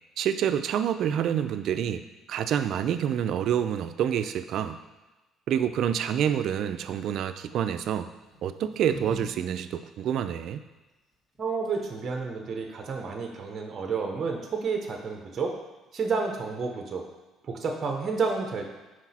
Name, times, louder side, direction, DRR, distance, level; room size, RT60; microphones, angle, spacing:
voice 1, 0.2-4.8 5.5-8.1 8.4-10.6, right 9 dB, 60° right, 10 dB, 0.4 m, -27 dB
sound 1, 6.8-7.3 8.2-9.3 9.6-9.7 11.3-11.4 11.6-12.1, left 1 dB, 10° left, 1.6 m, -42 dB
voice 2, 11.4-15.5 15.9-17.0 17.4-18.6, right 4 dB, 35° right, 2 dB, 0.8 m, -30 dB
6.0 x 4.9 x 4.2 m, 1.1 s
cardioid pair, 125°, 0 cm